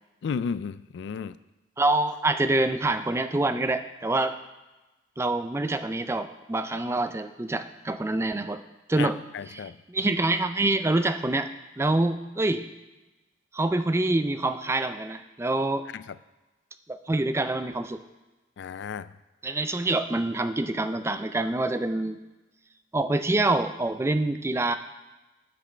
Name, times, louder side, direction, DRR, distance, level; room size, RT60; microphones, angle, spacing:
voice 1, 0.2-1.4 9.0-9.8 15.9-16.2 18.6-19.1, left 6 dB, 70° left, 16 dB, 0.3 m, -33 dB
voice 2, 1.8-4.4 5.2-8.6 8.9-9.2 9.5-11.5 11.8-12.6 13.5-15.8 16.9-18.0 19.4-22.2 22.9-24.7, right 2 dB, 15° right, 10 dB, 0.4 m, -26 dB
10.0 x 6.1 x 4.5 m, 1.1 s
head